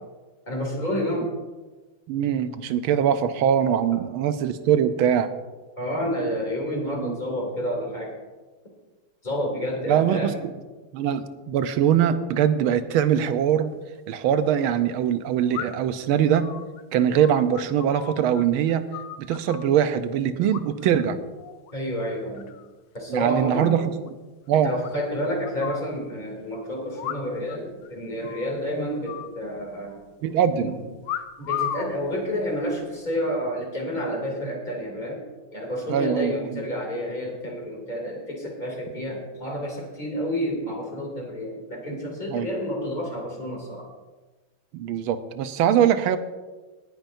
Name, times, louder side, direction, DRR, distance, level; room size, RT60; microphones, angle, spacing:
voice 1, 0.5-1.3 5.8-8.1 9.2-10.4 21.7-22.5 22.9-23.8 24.6-30.0 30.6-30.8 31.4-35.2 35.5-43.9, equal, 20° left, -1 dB, 3.0 m, -29 dB
voice 2, 2.1-5.3 7.0-7.2 9.9-10.5 10.9-13.7 14.1-16.5 16.9-18.9 19.3-21.2 23.1-23.9 24.5-24.7 30.2-30.7 35.9-36.4 42.3-42.5 44.7-46.2, right 9 dB, 85° right, 11 dB, 1.6 m, -22 dB
sound 1, 13.7-13.8 15.5-16.0 16.4-18.4 18.7-19.7 20.5-21.0 21.3-21.7 22.1-22.7 23.0-23.1 23.3-23.4 23.7-23.8 24.1-24.2 24.8-25.9 27.0-27.6 27.8-27.9 28.2-28.6 29.1-30.0 31.0-31.9 32.7-33.0, left 10 dB, 80° left, 1.5 m, -35 dB
19.5 x 10.0 x 2.7 m, 1.2 s
omnidirectional pair, 2.3 m